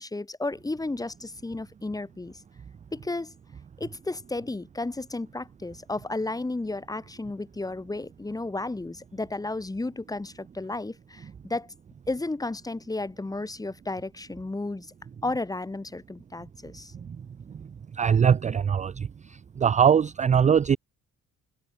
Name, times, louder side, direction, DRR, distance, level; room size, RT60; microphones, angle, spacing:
voice 1, 0.0-2.4 2.9-3.3 3.8-11.7 12.1-14.9 15.2-16.9, left 2 dB, 10° left, 2.6 m, -33 dB
voice 2, 18.0-19.1 19.6-20.8, right 7 dB, 25° right, 0.4 m, -21 dB
cardioid pair, 145°, 29 cm